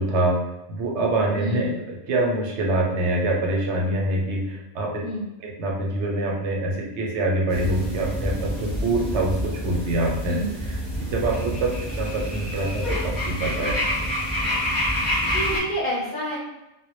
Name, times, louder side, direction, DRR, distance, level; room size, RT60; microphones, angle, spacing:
voice 1, 0.0-1.7 2.1-5.0 5.4-10.4 10.7-10.8 11.0-13.8, right 2 dB, 80° right, 0 dB, 0.9 m, -25 dB
voice 2, 1.4-1.8 5.0-5.3 10.3-10.5 15.3-16.4, equal, 50° left, -5 dB, 0.6 m, -29 dB
sound 1, 7.5-15.6, equal, ahead, 0.8 m, -27 dB
2.1 x 2.1 x 2.9 m, 0.94 s
omnidirectional pair, 1.2 m